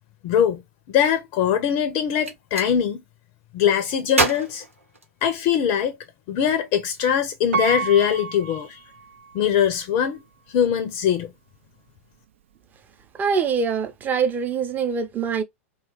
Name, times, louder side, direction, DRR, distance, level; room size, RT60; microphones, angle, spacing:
voice 1, 0.2-0.6 0.9-3.0 3.5-4.6 5.2-6.0 6.3-8.8 9.3-10.2 10.5-11.3, left 8 dB, 45° left, 0.5 m, -22 dB
Gunshot gunfire, 2.1-2.7 4.1-5.6, right 2 dB, 90° right, 1.0 m, -26 dB
Piano, 7.5-9.5 10.1-10.2, right 5 dB, 65° right, 0.4 m, -30 dB
voice 2, 13.2-15.4, right 6 dB, 25° right, 0.7 m, -24 dB
2.8 x 2.3 x 3.0 m
figure-of-eight pair, 90°, 7 cm